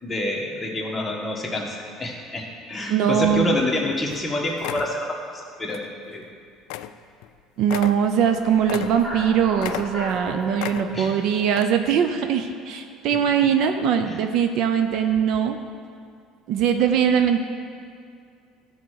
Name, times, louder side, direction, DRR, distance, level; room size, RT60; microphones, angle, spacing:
voice 1, 0.0-6.3 10.9-11.1 14.1-14.2, left 1 dB, 10° left, -2 dB, 1.4 m, -28 dB
voice 2, 2.9-3.5 7.6-15.6 16.5-17.4, right 8 dB, 65° right, 7 dB, 0.6 m, -21 dB
sound 1, 3.7-3.8 4.1-4.3 4.6-5.0 5.7-5.9 6.2-6.3 6.7-7.0 7.2-7.3 7.6-9.3 9.6-10.2 10.6-11.1 11.5-11.6, left 13 dB, 80° left, 0.3 m, -34 dB
sound 2, 8.4-12.6, right 1 dB, 25° right, 1.1 m, -37 dB
12.0 x 4.5 x 6.5 m, 2.3 s
cardioid pair, 130°, 0 cm